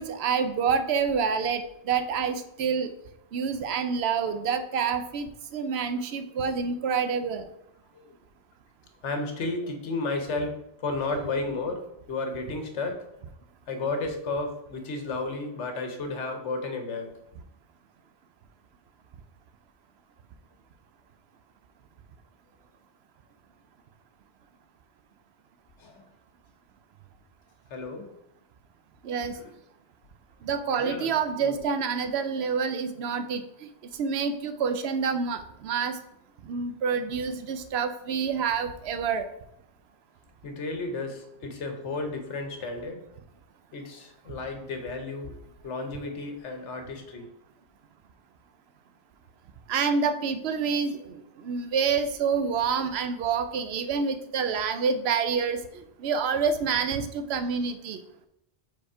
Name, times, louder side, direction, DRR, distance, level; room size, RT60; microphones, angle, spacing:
voice 1, 0.0-2.9 3.3-7.4 29.0-29.4 30.4-33.4 34.0-36.0 36.4-39.3 49.7-58.0, right 6 dB, 70° right, 10 dB, 0.8 m, -27 dB
voice 2, 9.0-13.0 13.7-17.2 25.8-26.0 27.7-28.1 29.3-29.5 30.8-31.1 31.4-31.6 40.4-43.0 43.7-45.3 45.6-47.3, left 3 dB, 85° left, 5 dB, 1.3 m, -33 dB
5.1 x 4.2 x 4.8 m, 0.81 s
omnidirectional pair, 1.2 m